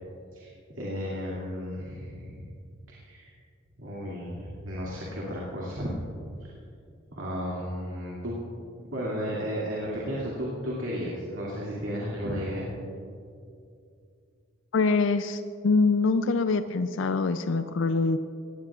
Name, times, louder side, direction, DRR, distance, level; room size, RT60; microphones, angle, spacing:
voice 1, 0.3-2.5 2.9-3.3 3.8-5.9 6.4-6.5 7.1-8.4 8.8-12.7, equal, 70° right, -6 dB, 2.4 m, -34 dB
voice 2, 14.7-18.2, left 4 dB, 65° left, 10 dB, 0.4 m, -24 dB
18.5 x 16.5 x 2.4 m, 2.4 s
head